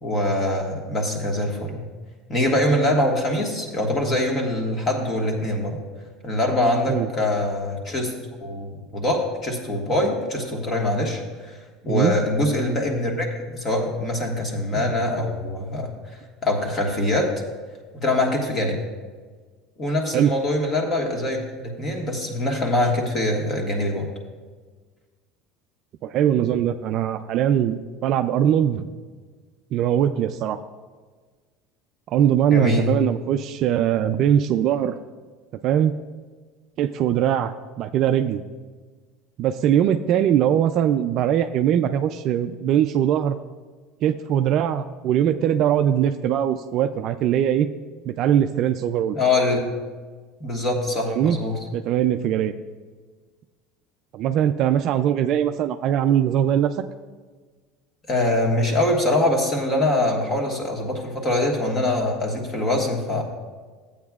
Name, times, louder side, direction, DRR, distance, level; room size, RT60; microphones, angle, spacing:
voice 1, 0.0-1.8 2.3-5.8 6.2-8.1 8.4-11.6 11.8-13.3 13.5-17.3 17.9-18.8 19.8-24.1 32.5-32.9 49.1-49.6 50.4-51.6 58.1-63.2, left 1 dB, 25° left, 1 dB, 1.5 m, -23 dB
voice 2, 26.0-28.9 29.7-30.6 32.1-35.0 35.6-35.9 36.8-38.4 39.4-43.4 44.0-47.7 48.1-49.2 51.1-51.4 51.7-52.5 54.1-56.9, right 10 dB, 45° right, 9 dB, 0.3 m, -21 dB
14.5 x 8.6 x 2.4 m, 1.4 s
cardioid pair, 160°, 0 cm